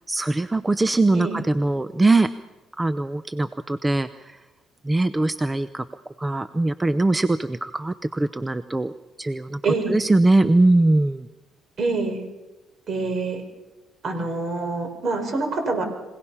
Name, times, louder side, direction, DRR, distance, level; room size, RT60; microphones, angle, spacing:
voice 1, 0.1-2.3 2.8-4.4 4.8-5.8 6.2-8.9 9.2-9.6 9.9-11.3, right 2 dB, 15° right, 13 dB, 0.7 m, -21 dB
voice 2, 9.6-10.0 11.8-12.2 12.9-13.4 14.0-15.8, right 3 dB, 55° right, 5 dB, 5.0 m, -26 dB
26.0 x 18.0 x 5.7 m, 1.1 s
cardioid pair, 85°, 0 cm